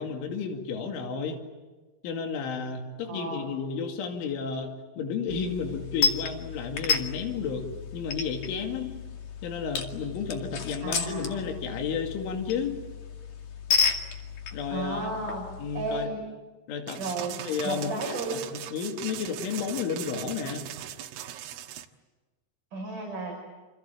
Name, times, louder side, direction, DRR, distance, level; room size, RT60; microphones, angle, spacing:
voice 1, 0.0-1.4 2.0-7.7 7.9-8.9 9.4-12.8 14.5-15.1 15.6-16.1 16.7-17.0 17.3-20.7, left 6 dB, 75° left, 3 dB, 4.8 m, -32 dB
voice 2, 3.1-3.5 10.8-11.5 14.7-15.5 15.7-16.2 17.0-17.4 17.6-18.4 22.7-23.3, right 3 dB, 40° right, -1 dB, 7.1 m, -33 dB
sound 1, 5.3-16.1, left 6 dB, 50° left, 3.2 m, -32 dB
sound 2, 16.9-21.9, right 11 dB, 85° right, 3.9 m, -39 dB
28.0 x 28.0 x 7.5 m, 1.2 s
omnidirectional pair, 5.6 m